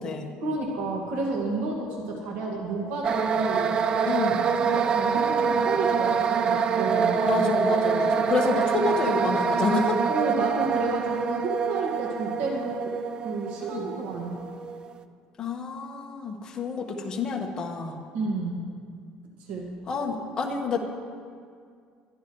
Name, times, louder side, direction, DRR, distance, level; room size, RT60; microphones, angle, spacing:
voice 1, 0.4-3.7 4.6-7.4 10.1-14.4 18.1-18.7 19.5-19.7, right 3 dB, 70° right, -1 dB, 1.9 m, -31 dB
sound 1, 3.0-14.9, right 6 dB, 30° right, 0.5 m, -25 dB
voice 2, 4.0-4.5 7.2-10.0 13.6-14.0 15.4-18.0 19.9-20.8, left 4 dB, 25° left, 0 dB, 1.5 m, -28 dB
22.0 x 12.0 x 3.2 m, 2.2 s
cardioid pair, 160°, 3 cm